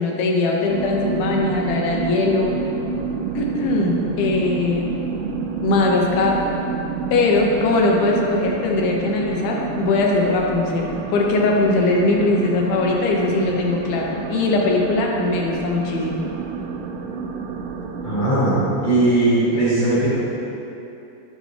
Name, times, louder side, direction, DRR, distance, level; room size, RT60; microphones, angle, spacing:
voice 1, 0.0-2.5 3.4-4.9 5.6-6.4 7.1-16.3, left 2 dB, 90° left, -1 dB, 2.8 m, -20 dB
sound 1, 0.7-18.3, right 5 dB, 80° right, 2.2 m, -29 dB
voice 2, 18.0-20.1, right 2 dB, 40° left, -13 dB, 2.0 m, -18 dB
12.0 x 5.1 x 3.3 m, 2.9 s
omnidirectional pair, 4.2 m